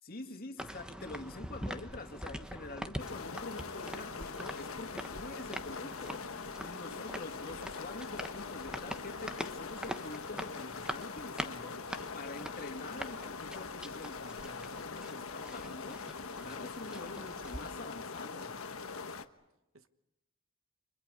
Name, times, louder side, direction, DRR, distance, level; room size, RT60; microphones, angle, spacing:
voice 1, 0.0-18.6, left 2 dB, 45° left, 2.5 m, -46 dB
sound 1, 0.6-17.7, equal, 5° right, 1.1 m, -44 dB
sound 2, 3.0-19.2, left 4 dB, 75° left, 1.3 m, -43 dB
voice 2, 6.7-7.6 19.7-19.9, right 2 dB, 65° right, 1.3 m, -58 dB
30.0 x 25.0 x 5.3 m
head